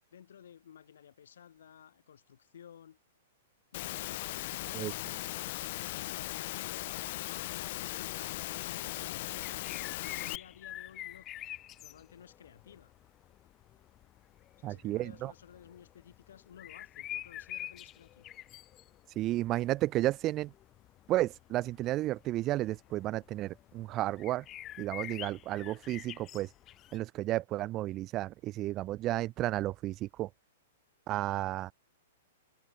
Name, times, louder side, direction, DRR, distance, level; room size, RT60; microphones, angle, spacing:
voice 1, 0.1-3.0 3.7-5.5 5.8-9.7 10.0-11.3 11.8-12.9 14.6-18.3, left 9 dB, 85° left, 4.6 m, -55 dB
Engine / Mechanisms, 3.7-10.4, left 18 dB, 45° left, 1.7 m, -38 dB
sound 1, 8.6-27.0, left 13 dB, 20° left, 4.2 m, -48 dB
voice 2, 14.6-15.3 19.2-20.5 21.1-24.4 24.8-26.5 26.9-30.3 31.1-31.7, right 15 dB, 25° right, 0.4 m, -32 dB
hypercardioid pair, 165°, 0 cm